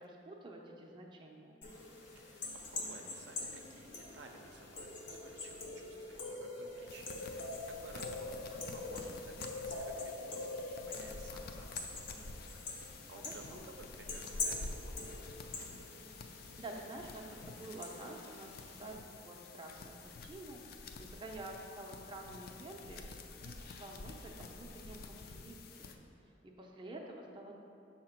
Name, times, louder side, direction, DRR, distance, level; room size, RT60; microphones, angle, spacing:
voice 1, 0.0-1.6 8.5-9.2 13.5-13.6 16.6-23.1 23.4-25.9 26.4-27.5, right 2 dB, 25° right, 0 dB, 0.5 m, -49 dB
sound 1, 1.6-19.0, left 3 dB, 75° left, 0.9 m, -44 dB
voice 2, 2.1-8.4 8.7-15.2, right 2 dB, 75° right, 3 dB, 0.5 m, -56 dB
sound 2, 6.9-25.9, left 3 dB, 55° left, 0.4 m, -50 dB
6.6 x 2.9 x 5.8 m, 2.8 s
head